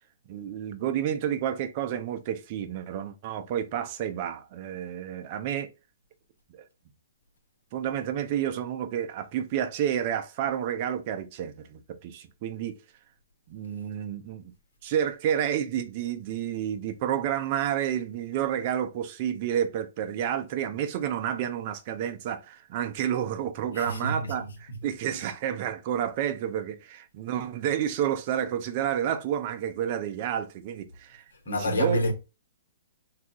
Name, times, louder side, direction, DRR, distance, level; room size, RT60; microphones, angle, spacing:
voice 1, 0.3-5.7 6.5-6.7 7.7-12.8 13.5-14.5 14.8-32.0, right 10 dB, 40° right, 0.5 m, -30 dB
voice 2, 23.7-24.9 25.1-25.3 31.3-32.1, left 1 dB, 90° left, 1.2 m, -30 dB
2.7 x 2.4 x 3.6 m
hypercardioid pair, 145°, 0 cm